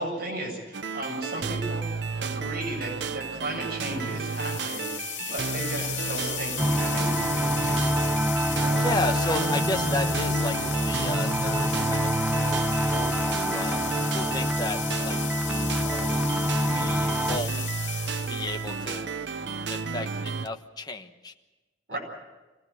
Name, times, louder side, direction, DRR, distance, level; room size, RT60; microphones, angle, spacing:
voice 1, 0.0-8.1 8.5-8.9 10.4-10.6 21.9-22.0, right 1 dB, 55° right, 0 dB, 7.9 m, -36 dB
sound 1, 0.7-20.5, right 5 dB, 70° right, 0.8 m, -32 dB
sound 2, 3.9-18.9, left 9 dB, 75° left, 2.6 m, -35 dB
sound 3, 6.6-17.4, equal, 5° right, 0.9 m, -27 dB
voice 2, 8.8-13.8 14.1-15.2 15.8-16.1 16.7-17.6 18.3-19.1 19.7-21.3 21.9-22.0, left 2 dB, 20° left, 4 dB, 1.1 m, -33 dB
23.5 x 17.0 x 8.4 m, 1.1 s
head